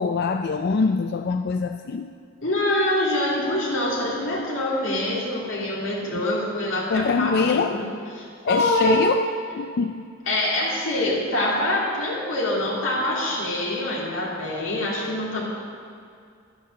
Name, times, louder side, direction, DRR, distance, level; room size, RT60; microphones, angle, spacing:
voice 1, 0.0-2.1 6.9-7.8 8.4-9.2 9.5-10.1, left 4 dB, 55° left, 7 dB, 0.4 m, -24 dB
voice 2, 2.4-7.9 8.1-9.1 10.3-15.4, left 1 dB, 75° left, -6 dB, 2.6 m, -25 dB
11.5 x 9.4 x 6.4 m, 2.3 s
head